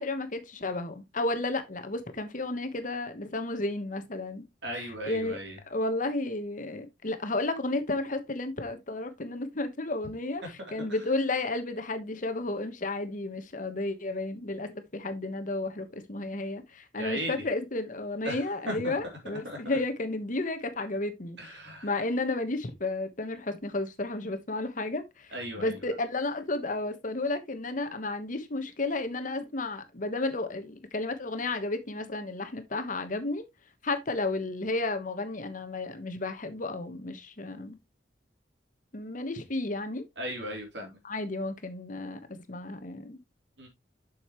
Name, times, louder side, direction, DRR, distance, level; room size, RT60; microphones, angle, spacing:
voice 1, 0.0-4.5 4.7-5.4 5.6-33.4 33.8-37.8 38.9-40.0 41.0-43.2, left 2 dB, 45° left, 1.2 m, -32 dB
voice 2, 4.6-5.5 17.0-17.4 18.2-18.9 19.4-19.6 21.4-21.9 25.3-25.8 40.2-41.0 43.6-43.7, equal, 75° right, 3.2 m, -37 dB
7.8 x 6.5 x 3.0 m
head